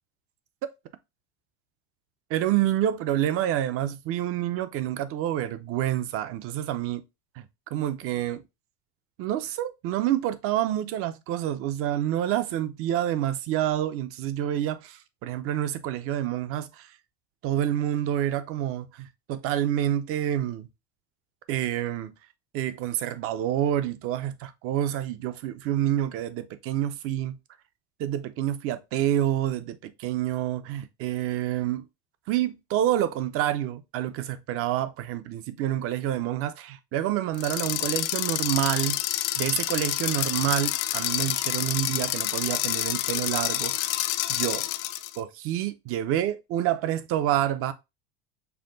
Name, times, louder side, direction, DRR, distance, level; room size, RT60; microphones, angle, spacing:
voice 1, 2.3-7.0 7.4-7.5 7.7-8.4 9.2-16.9 17.4-20.7 21.5-22.1 22.5-27.4 28.0-31.8 32.3-39.0 39.4-43.9 44.3-44.7 45.2-47.7, right 12 dB, 45° right, 0.6 m, -28 dB
sound 1, 37.3-45.2, left 15 dB, 50° left, 0.5 m, -28 dB
5.7 x 2.2 x 3.8 m
supercardioid pair, 135°, 33 cm